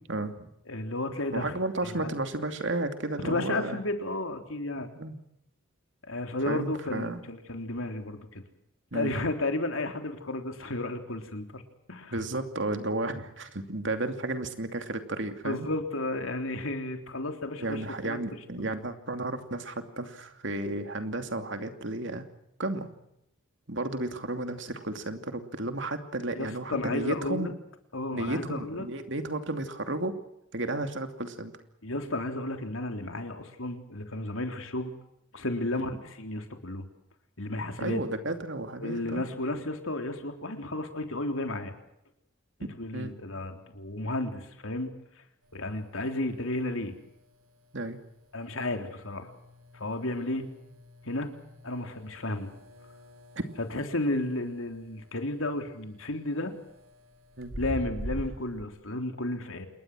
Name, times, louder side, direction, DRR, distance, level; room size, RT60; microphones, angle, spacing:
voice 1, 0.1-0.5 1.3-3.8 5.0-5.2 6.5-7.2 8.9-9.1 12.1-15.7 17.6-22.3 22.6-22.9 23.7-27.5 28.1-30.2 30.5-31.5 35.7-35.9 37.8-39.3 42.9-43.2 47.7-48.0 57.4-57.6, right 2 dB, 60° right, 7 dB, 2.7 m, -33 dB
voice 2, 0.7-1.5 2.0-2.2 3.2-4.9 6.1-8.4 8.9-11.6 11.9-12.1 15.4-18.2 26.4-27.5 27.9-28.9 31.8-34.9 35.3-36.9 37.4-38.0 38.8-41.7 42.7-44.9 45.5-46.9 48.3-49.3 49.7-50.5 51.0-51.3 51.6-52.5 53.7-56.5 57.6-59.7, left 2 dB, 75° left, 6 dB, 3.6 m, -33 dB
sound 1, 45.4-58.6, right 1 dB, 80° right, 2.6 m, -46 dB
28.0 x 21.5 x 6.3 m, 0.80 s
head